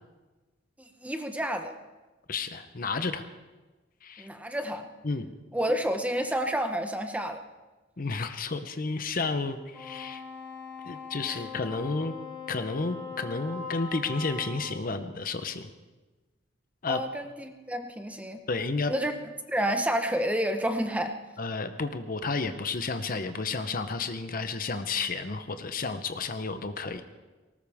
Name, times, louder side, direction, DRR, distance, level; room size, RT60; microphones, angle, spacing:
voice 1, 0.8-1.8 4.2-4.9 5.5-7.4 11.3-11.4 16.9-18.4 18.9-19.1 19.5-21.1, equal, 5° right, 6 dB, 1.0 m, -29 dB
voice 2, 2.3-3.3 4.0-4.3 5.0-5.3 8.0-10.2 10.8-12.2 12.5-15.7 16.8-17.0 18.5-18.9 21.4-27.0, left 4 dB, 45° left, 9 dB, 0.8 m, -31 dB
Wind instrument woodwind instrument, 9.7-14.8, left 5 dB, 10° left, 4.2 m, -41 dB
19.0 x 18.5 x 3.6 m, 1.2 s
head